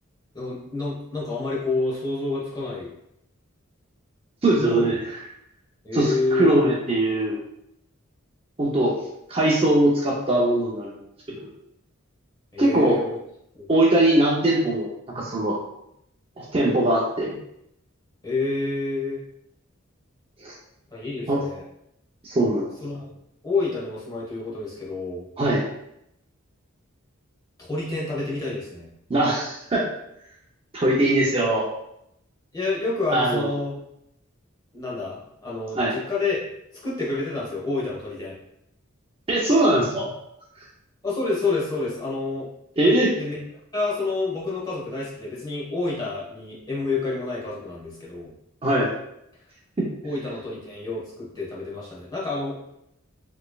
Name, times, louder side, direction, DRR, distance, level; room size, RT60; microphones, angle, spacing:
voice 1, 0.3-2.9 4.6-5.0 5.8-6.7 12.5-13.2 13.5-13.7 18.2-19.2 20.9-21.6 22.8-23.1 23.4-25.2 27.6-28.9 32.5-33.8 34.7-36.4 36.8-38.3 41.0-42.5 43.2-43.4 43.7-48.3 50.0-52.6, left 3 dB, 20° left, -6 dB, 1.2 m, -28 dB
voice 2, 4.4-5.0 5.9-7.4 8.6-8.9 9.3-11.0 11.4-11.5 12.6-13.0 13.7-14.9 15.1-15.6 16.4-17.4 20.4-20.5 21.3-21.4 22.2-22.7 25.4-25.6 29.1-29.9 30.7-31.6 33.1-33.5 35.7-35.9 39.3-40.1 42.8-43.1 48.6-48.9 49.8-49.9, right 1 dB, 25° right, -4 dB, 0.6 m, -21 dB
4.3 x 3.2 x 2.3 m, 0.78 s
head